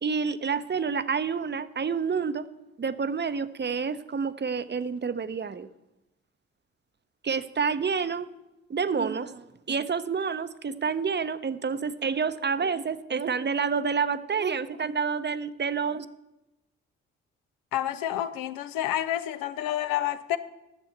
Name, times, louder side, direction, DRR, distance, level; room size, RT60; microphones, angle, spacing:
voice 1, 0.0-2.5 2.8-5.7 7.2-8.3 8.7-16.1, right 5 dB, 35° right, 0.7 m, -28 dB
voice 2, 17.7-20.4, left 12 dB, 85° left, 0.5 m, -29 dB
9.0 x 6.8 x 7.8 m
hypercardioid pair, 40°, 33 cm